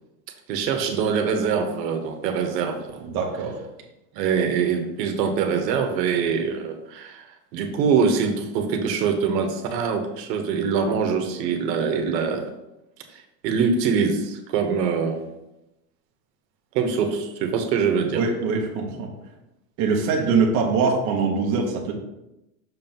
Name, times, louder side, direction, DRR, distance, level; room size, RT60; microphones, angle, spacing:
voice 1, 0.5-3.0 4.1-12.4 13.1-15.2 16.7-18.2, right 6 dB, 85° right, 4 dB, 1.2 m, -24 dB
voice 2, 3.0-3.6 18.1-19.1 19.8-21.9, right 4 dB, 35° right, 0 dB, 0.9 m, -23 dB
6.3 x 3.0 x 5.4 m, 0.92 s
supercardioid pair, 175°, 49 cm